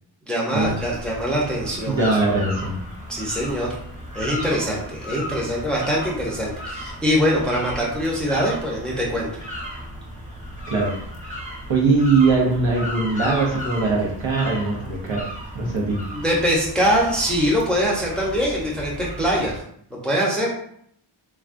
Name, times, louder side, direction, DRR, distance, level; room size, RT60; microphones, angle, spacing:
voice 1, 0.3-2.1 3.1-3.7 4.1-9.3 16.1-19.6 19.9-20.5, equal, ahead, -4 dB, 0.7 m, -23 dB
sound 1, 0.6-19.6, equal, 15° right, 1.0 m, -35 dB
voice 2, 1.6-2.8 10.7-10.9 11.7-15.2 15.5-16.0, right 3 dB, 70° right, -2 dB, 0.9 m, -21 dB
3.4 x 2.3 x 2.5 m, 0.68 s
cardioid pair, 60°, 47 cm